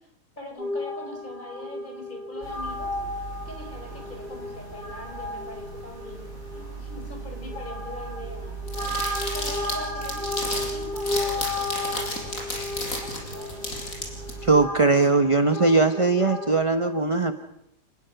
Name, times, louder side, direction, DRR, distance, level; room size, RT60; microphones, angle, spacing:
voice 1, 0.4-3.0 3.4-8.6 9.3-13.8, left 1 dB, 25° left, 3 dB, 5.2 m, -42 dB
sound 1, 0.6-16.6, left 2 dB, 85° left, 5.9 m, -34 dB
sound 2, 2.4-14.7, right 4 dB, 40° right, 8.1 m, -40 dB
sound 3, 8.7-14.3, left 1 dB, 50° left, 5.4 m, -32 dB
voice 2, 14.4-17.3, right 3 dB, 25° right, 8 dB, 0.8 m, -20 dB
30.0 x 19.0 x 5.9 m, 0.78 s
omnidirectional pair, 1.8 m